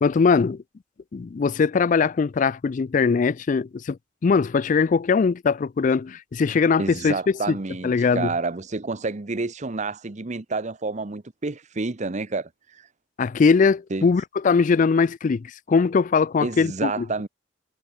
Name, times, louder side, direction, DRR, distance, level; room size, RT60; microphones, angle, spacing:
voice 1, 0.0-0.6 1.1-4.0 4.2-7.2 7.5-7.6 7.8-8.3 13.2-17.1, left 5 dB, 45° left, 0.4 m, -21 dB
voice 2, 6.8-12.9 13.9-14.1 16.4-17.3, right 3 dB, 40° right, 0.8 m, -29 dB
head